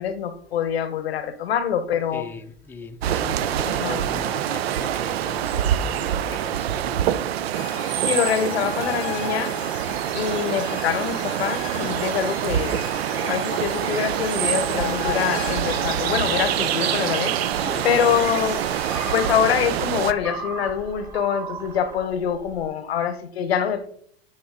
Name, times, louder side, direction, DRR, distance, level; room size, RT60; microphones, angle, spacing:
voice 1, 0.0-2.3 3.7-4.0 8.0-9.5 10.1-12.8 13.3-17.4 17.8-18.6 19.1-23.9, left 8 dB, 80° left, 0.8 m, -25 dB
voice 2, 2.1-7.4 17.6-18.2, left 3 dB, 5° left, 0.5 m, -38 dB
sound 1, 3.0-20.1, right 11 dB, 80° right, 0.5 m, -25 dB
sound 2, 7.5-19.1, left 18 dB, 55° left, 0.4 m, -36 dB
sound 3, 17.4-22.7, right 3 dB, 10° right, 1.4 m, -37 dB
8.9 x 4.2 x 3.6 m
hypercardioid pair, 95°, 30 cm